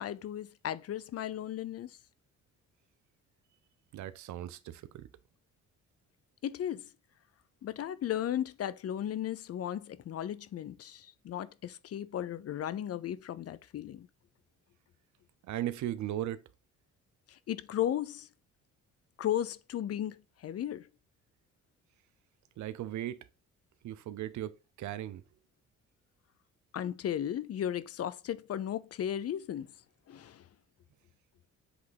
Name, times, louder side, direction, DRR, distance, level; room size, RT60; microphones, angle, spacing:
voice 1, 0.0-2.0 6.4-6.9 7.6-14.1 17.3-18.3 19.2-20.9 26.7-29.7 30.1-30.5, left 11 dB, 50° left, 0.6 m, -35 dB
voice 2, 3.9-5.1 15.4-16.4 22.6-23.3 23.8-25.2, right 12 dB, 70° right, 0.6 m, -37 dB
7.8 x 3.5 x 3.9 m
cardioid pair, 90°, 30 cm